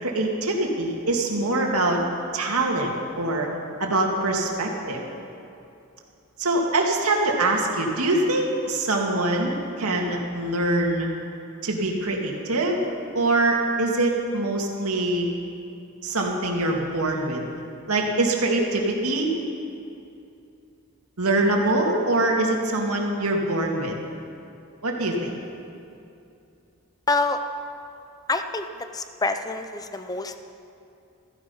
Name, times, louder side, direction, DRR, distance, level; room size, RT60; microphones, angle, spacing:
voice 1, 0.0-2.0 2.3-3.5 3.8-5.0 6.4-11.1 11.6-12.9 13.1-15.3 16.0-17.4 17.9-19.3 21.2-24.0 24.8-25.3, right 2 dB, 85° right, 0 dB, 2.3 m, -24 dB
voice 2, 27.1-27.4 28.3-28.7 28.9-30.4, left 3 dB, 15° left, 8 dB, 0.6 m, -26 dB
15.0 x 14.5 x 5.6 m, 2.7 s
head